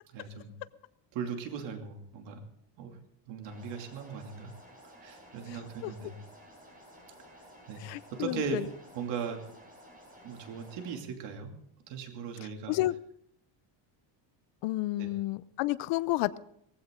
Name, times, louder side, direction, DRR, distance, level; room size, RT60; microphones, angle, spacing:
voice 1, 0.1-0.5 1.1-2.4 2.8-3.0 3.3-4.5 4.8-6.1 7.7-7.8 8.1-8.6 8.9-9.5 10.2-11.5 11.9-12.8 15.0-15.1, right 6 dB, 75° right, 4 dB, 2.8 m, -38 dB
sound 1, 3.4-10.9, equal, 20° right, 5.7 m, -54 dB
voice 2, 5.5-5.9 7.8-8.6 12.7-12.9 14.6-16.4, left 17 dB, 70° left, 17 dB, 0.8 m, -31 dB
18.5 x 15.5 x 3.8 m, 0.73 s
cardioid pair, 155°, 44 cm